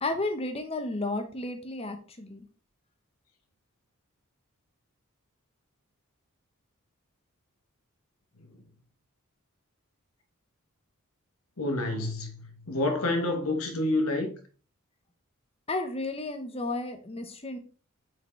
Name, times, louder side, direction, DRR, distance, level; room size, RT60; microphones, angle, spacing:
voice 1, 0.0-2.5 15.7-17.6, left 2 dB, 25° left, 0.8 m, -32 dB
voice 2, 11.6-14.3, left 2 dB, 80° left, 1.3 m, -28 dB
6.4 x 4.8 x 3.2 m
head